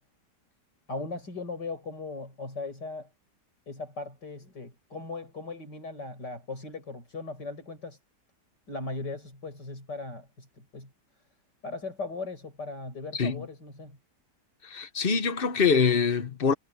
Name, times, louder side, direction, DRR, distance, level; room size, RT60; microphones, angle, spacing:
voice 1, 0.9-3.1 3.7-8.0 8.7-10.9 11.6-14.0, left 3 dB, 80° left, 7.3 m, -38 dB
voice 2, 13.1-13.5 14.6-16.5, left 5 dB, 40° left, 1.1 m, -24 dB
omnidirectional pair, 1.8 m